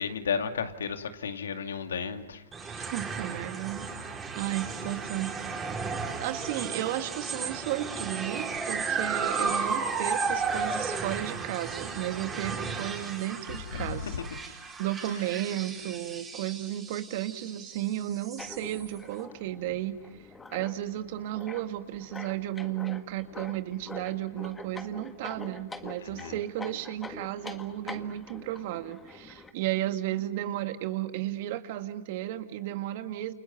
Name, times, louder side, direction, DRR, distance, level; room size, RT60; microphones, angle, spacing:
voice 1, 0.0-2.4 2.8-2.9 13.7-14.2 26.2-26.3, left 6 dB, 85° left, 2.2 m, -33 dB
sound 1, 2.5-19.0, right 5 dB, 15° right, 4.7 m, -34 dB
voice 2, 2.9-3.9 4.4-5.3 6.2-20.0 20.5-33.3, right 14 dB, 55° right, 1.9 m, -34 dB
sound 2, 18.4-29.5, left 3 dB, 10° left, 1.7 m, -45 dB
30.0 x 29.5 x 5.8 m
hypercardioid pair, 120°, 0 cm